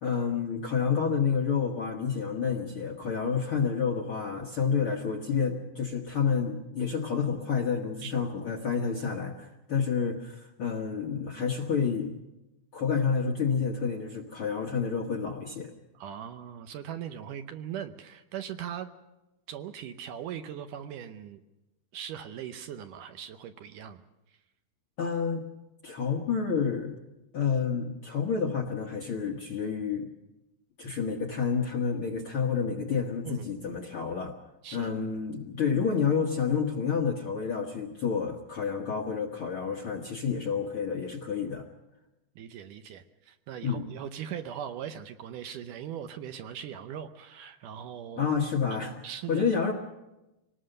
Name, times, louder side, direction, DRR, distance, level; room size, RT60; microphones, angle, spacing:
voice 1, 0.0-12.1 12.7-15.7 25.0-25.4 25.8-27.0 27.3-30.1 30.8-34.3 34.7-41.6 43.6-43.8 48.2-48.9 49.3-49.7, left 6 dB, 55° left, 2 dB, 1.5 m, -29 dB
voice 2, 15.9-18.9 19.5-21.4 21.9-24.0 24.3-24.4 33.2-33.5 34.6-34.9 42.4-48.3 49.0-49.5, right 9 dB, 70° right, 8 dB, 2.2 m, -40 dB
25.0 x 19.0 x 6.7 m, 0.97 s
omnidirectional pair, 4.2 m